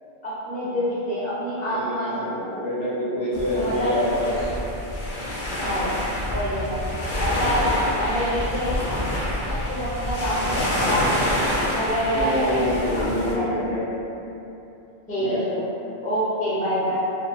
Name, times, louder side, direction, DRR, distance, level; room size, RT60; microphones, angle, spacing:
voice 1, 0.2-2.4 3.6-4.0 5.6-5.9 6.3-6.8 7.2-8.9 9.5-12.7 12.9-13.5 15.1-15.6 16.0-16.9, equal, 10° left, -10 dB, 0.4 m, -27 dB
voice 2, 1.6-4.5 12.1-13.9 15.2-15.4, left 1 dB, 85° left, -9 dB, 1.1 m, -26 dB
sound 1, 3.3-13.3, left 1 dB, 60° left, 0.6 m, -27 dB
2.6 x 2.1 x 2.5 m, 2.9 s
omnidirectional pair, 1.1 m